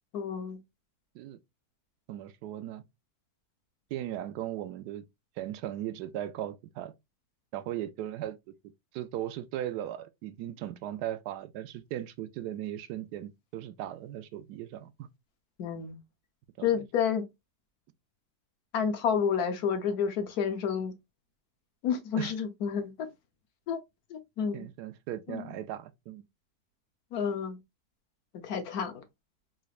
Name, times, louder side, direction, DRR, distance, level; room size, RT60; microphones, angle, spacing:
voice 1, 0.1-0.6 15.6-16.0 16.6-17.2 18.7-20.9 21.8-23.1 23.7-23.8 24.1-24.7 25.3-25.4 27.1-27.6 28.4-29.0, left 7 dB, 70° left, 1.2 m, -30 dB
voice 2, 2.1-2.8 3.9-5.1 5.4-6.9 7.5-8.5 8.9-15.1 16.6-16.9 22.2-22.3 24.5-26.2, right 12 dB, 80° right, 1.1 m, -37 dB
3.8 x 3.1 x 2.4 m
omnidirectional pair, 1.7 m